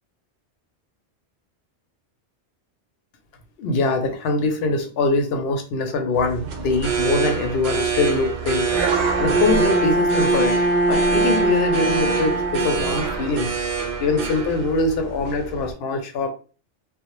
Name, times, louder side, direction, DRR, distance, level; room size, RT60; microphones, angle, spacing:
voice 1, 3.6-8.7 9.2-10.6 10.9-13.5 14.0-16.3, left 3 dB, 65° left, 5 dB, 0.8 m, -23 dB
sound 1, 6.1-15.7, right 6 dB, 70° right, 0.8 m, -26 dB
Bowed string instrument, 8.7-13.2, right 1 dB, ahead, 0.5 m, -22 dB
2.1 x 2.1 x 2.9 m, 0.36 s
omnidirectional pair, 1.2 m